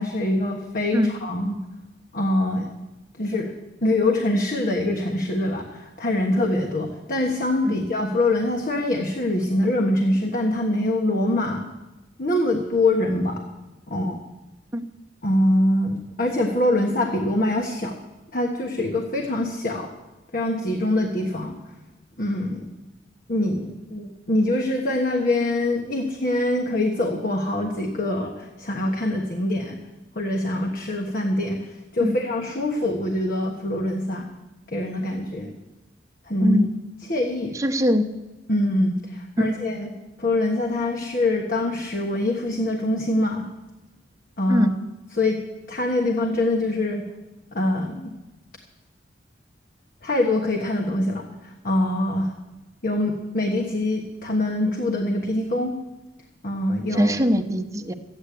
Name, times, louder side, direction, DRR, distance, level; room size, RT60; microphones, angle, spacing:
voice 1, 0.0-1.6 2.1-2.7 3.2-3.5 3.8-11.6 12.2-13.4 13.9-14.2 15.2-18.0 18.3-19.9 20.3-21.5 22.2-22.6 23.3-29.8 30.1-34.3 34.7-35.5 36.3-36.6 37.1-37.6 38.5-39.9 40.2-43.4 44.4-44.7 45.1-45.4 45.7-47.0 47.5-48.1 50.0-52.3 52.8-55.7 56.4-57.1, left 1 dB, 55° left, 2 dB, 1.4 m, -24 dB
voice 2, 37.5-38.0 39.4-39.5 44.5-44.7 57.0-57.9, equal, 20° right, 6 dB, 0.9 m, -22 dB
13.5 x 9.6 x 8.4 m, 1.1 s
head